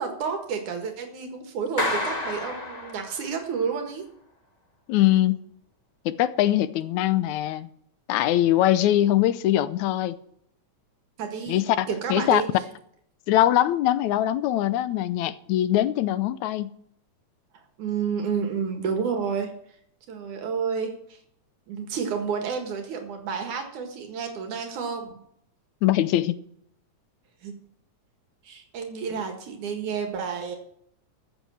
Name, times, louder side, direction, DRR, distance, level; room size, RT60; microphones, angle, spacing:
voice 1, 0.0-4.0 11.2-11.6 11.9-12.5 17.8-19.5 20.1-21.2 21.7-25.2 27.4-27.5 28.4-30.6, right 6 dB, 80° right, 3.2 m, -30 dB
Clapping, 1.8-3.5, left 2 dB, 25° left, 0.8 m, -30 dB
voice 2, 4.9-5.4 6.1-7.7 8.1-10.2 11.5-12.4 13.3-16.7 25.8-26.4, left 13 dB, 80° left, 2.0 m, -22 dB
15.0 x 8.3 x 6.3 m
omnidirectional pair, 3.5 m